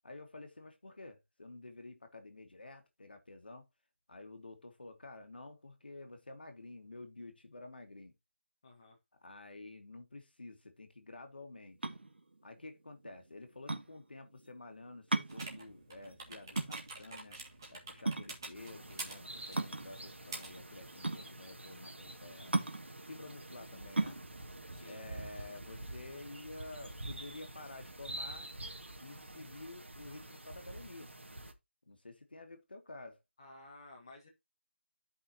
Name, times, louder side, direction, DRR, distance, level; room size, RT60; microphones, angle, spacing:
voice 1, 0.0-3.7 4.1-8.1 9.2-11.9 12.4-17.4 17.7-22.5 23.0-24.2 24.8-28.5 29.0-31.1 31.9-33.2, left 2 dB, 55° left, 1.9 m, -50 dB
voice 2, 8.6-9.0 24.7-25.0 33.4-34.3, left 2 dB, 25° left, 1.4 m, -54 dB
sound 1, 11.6-26.0, right 2 dB, 65° right, 1.6 m, -38 dB
sound 2, 15.3-21.2, right 3 dB, 20° right, 1.9 m, -48 dB
sound 3, 18.5-31.5, right 1 dB, 90° right, 2.1 m, -48 dB
12.5 x 5.6 x 2.9 m
figure-of-eight pair, 175°, 6 cm